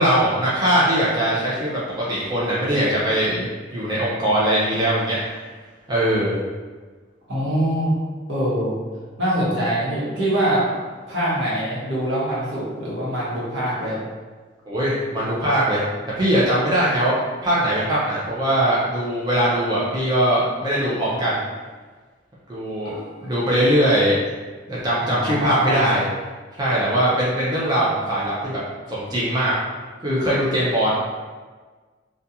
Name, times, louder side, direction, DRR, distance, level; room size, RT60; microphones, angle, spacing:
voice 1, 0.0-3.5 3.7-5.4 5.9-6.4 14.7-15.8 16.2-17.1 17.4-21.4 22.5-22.9 23.2-24.3 24.7-26.1 26.6-28.6 28.9-29.5 30.0-30.9, right 1 dB, 20° right, -8 dB, 0.4 m, -21 dB
voice 2, 7.3-8.0 8.3-8.8 9.2-10.6 11.1-14.0 22.8-23.0 25.0-25.9, right 1 dB, 70° right, -8 dB, 1.0 m, -24 dB
2.4 x 2.2 x 2.7 m, 1.4 s
head